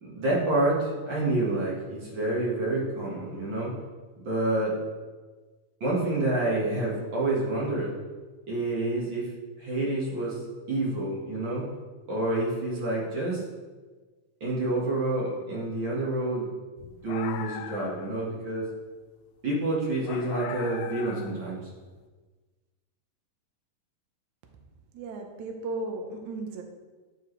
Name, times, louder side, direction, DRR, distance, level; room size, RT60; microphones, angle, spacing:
voice 1, 0.0-3.7 4.2-4.8 5.8-7.9 8.5-9.3 9.6-11.6 12.1-13.4 14.4-16.5 17.0-18.6 19.4-21.6, right 2 dB, 45° right, -5 dB, 1.6 m, -28 dB
sound 1, 16.8-18.1 20.0-21.5, left 8 dB, 85° left, 1.8 m, -39 dB
voice 2, 24.9-26.6, right 2 dB, 65° right, 3 dB, 2.1 m, -35 dB
11.5 x 5.5 x 3.2 m, 1.3 s
omnidirectional pair, 4.2 m